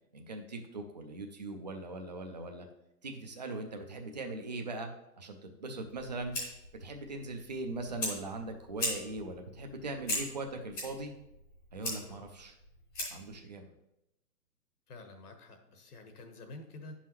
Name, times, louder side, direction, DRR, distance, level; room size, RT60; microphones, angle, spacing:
voice 1, 0.1-2.7 3.0-4.9 5.2-6.3 6.8-11.1 11.7-12.5 13.1-13.7, right 2 dB, 30° right, 4 dB, 0.4 m, -40 dB
Fire, 5.9-13.4, left 1 dB, 10° left, 0.7 m, -40 dB
voice 2, 14.9-16.9, left 2 dB, 70° left, 6 dB, 1.4 m, -49 dB
9.0 x 5.6 x 3.0 m, 0.89 s
hypercardioid pair, 150°, 48 cm